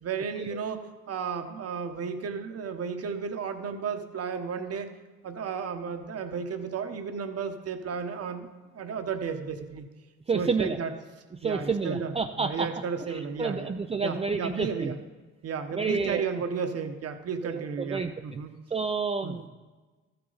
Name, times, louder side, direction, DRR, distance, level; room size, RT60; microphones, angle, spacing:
voice 1, 0.0-4.9 5.2-8.5 8.7-9.9 10.3-10.9 11.4-13.7 14.0-15.0 15.4-18.5 19.2-19.4, right 6 dB, 55° right, 7 dB, 1.1 m, -33 dB
voice 2, 10.3-10.8 11.4-12.7 13.1-14.9 15.7-16.2 17.4-18.1 18.7-19.5, right 4 dB, 20° right, 6 dB, 0.4 m, -29 dB
13.5 x 6.8 x 4.0 m, 1.3 s
cardioid pair, 90°, 30 cm